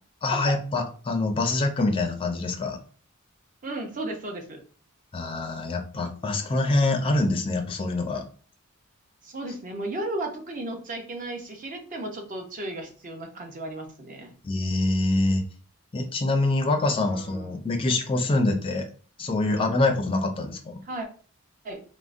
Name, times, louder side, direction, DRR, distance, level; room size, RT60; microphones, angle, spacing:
voice 1, 0.2-2.8 5.1-8.2 14.4-15.5 15.9-18.9 19.2-20.8, left 2 dB, 25° left, 4 dB, 0.4 m, -25 dB
voice 2, 3.6-4.6 9.2-14.3 17.0-17.5 20.9-21.1 21.6-21.8, right 1 dB, 40° right, 3 dB, 0.6 m, -34 dB
3.5 x 2.0 x 2.5 m, 0.40 s
head